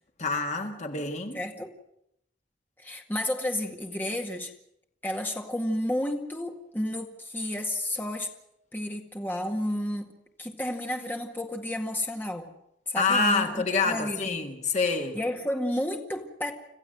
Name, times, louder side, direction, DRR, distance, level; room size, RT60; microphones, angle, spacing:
voice 1, 0.2-1.4 13.0-15.2, left 4 dB, 40° left, 1.8 m, -27 dB
voice 2, 1.3-1.7 2.8-4.5 5.0-8.3 8.7-10.1 10.4-12.5 12.9-14.4 15.1-16.5, left 1 dB, 10° left, 2.0 m, -31 dB
27.0 x 15.0 x 7.9 m
head